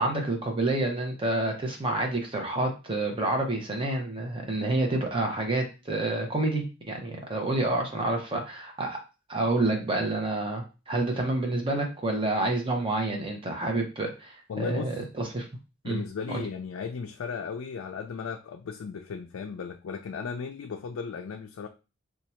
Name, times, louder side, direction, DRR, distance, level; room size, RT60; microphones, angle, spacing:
voice 1, 0.0-9.0 9.3-14.9 15.2-15.4 15.8-16.0 16.3-16.4, right 2 dB, 25° right, 0.8 m, -28 dB
voice 2, 14.5-15.1 15.8-21.7, left 5 dB, 70° left, 0.4 m, -36 dB
2.8 x 2.4 x 4.2 m
head